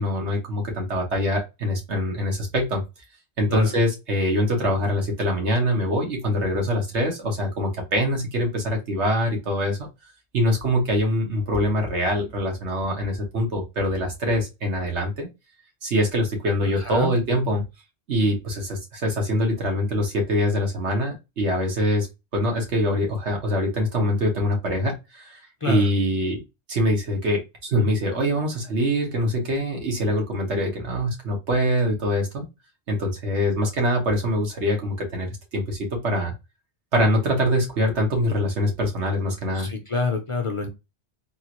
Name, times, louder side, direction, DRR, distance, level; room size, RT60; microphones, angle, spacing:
voice 1, 0.0-2.8 3.4-9.8 10.3-15.3 15.8-17.6 18.1-22.1 22.3-25.4 25.7-26.4 26.7-32.5 32.9-36.3 36.9-39.7, equal, 85° right, 1 dB, 1.6 m, -24 dB
voice 2, 16.8-17.1 25.6-25.8 39.5-40.7, left 3 dB, 35° left, 3 dB, 0.6 m, -27 dB
3.7 x 2.5 x 2.9 m, 0.24 s
omnidirectional pair, 1.1 m